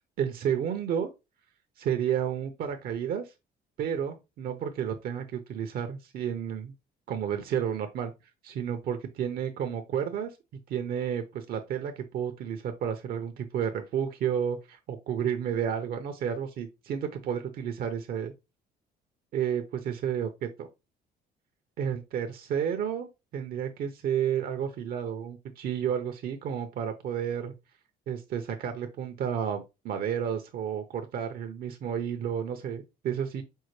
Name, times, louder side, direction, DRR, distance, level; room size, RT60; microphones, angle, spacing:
voice 1, 0.2-1.1 1.8-3.2 3.8-6.7 7.1-8.1 8.4-10.3 10.7-18.3 19.3-20.3 20.6-20.7 21.8-23.1 23.3-27.5 28.1-33.4, right 8 dB, 65° right, 7 dB, 0.7 m, -31 dB
5.4 x 2.1 x 3.1 m, 0.25 s
cardioid pair, 110°, 17 cm